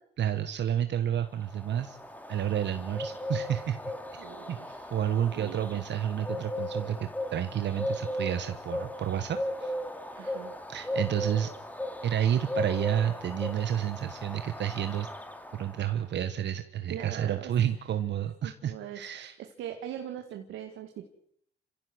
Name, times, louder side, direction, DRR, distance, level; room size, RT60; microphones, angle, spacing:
voice 1, 0.2-2.0 2.3-3.8 4.2-4.6 4.9-9.7 10.7-11.5 12.0-15.1 15.5-19.4, right 10 dB, 60° right, 9 dB, 1.3 m, -30 dB
Bird, 1.3-16.0, left 1 dB, 10° left, 2.7 m, -37 dB
voice 2, 4.2-4.9 5.3-5.8 10.1-10.6 16.9-17.5 18.4-21.0, right 10 dB, 90° right, 5 dB, 2.1 m, -41 dB
27.5 x 15.5 x 8.0 m, 0.71 s
cardioid pair, 90°, 20 cm